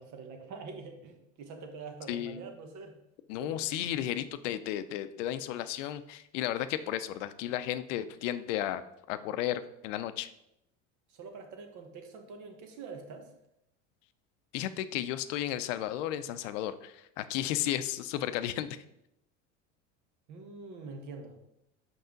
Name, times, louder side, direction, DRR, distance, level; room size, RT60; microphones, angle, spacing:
voice 1, 0.0-3.0 3.4-3.8 11.1-13.3 20.3-21.4, right 4 dB, 50° right, 5 dB, 1.3 m, -45 dB
voice 2, 2.1-2.4 3.3-8.8 9.1-10.3 14.5-18.7, left 12 dB, 75° left, 12 dB, 0.6 m, -33 dB
5.5 x 5.4 x 3.8 m, 0.81 s
supercardioid pair, 100°, 37 cm